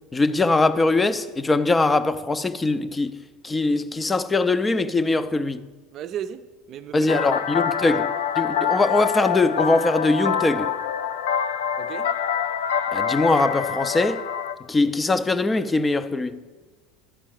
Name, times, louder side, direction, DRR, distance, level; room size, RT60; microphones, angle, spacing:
voice 1, 0.1-3.2 3.4-5.6 6.9-8.1 8.4-10.7 12.9-14.3 14.7-16.4, left 3 dB, 15° left, 0.6 m, -21 dB
voice 2, 5.9-8.2 11.8-12.1, right 9 dB, 50° right, 0.6 m, -37 dB
sound 1, 7.1-14.5, left 8 dB, 80° left, 0.5 m, -26 dB
11.5 x 4.5 x 7.6 m
supercardioid pair, 95°, 0 cm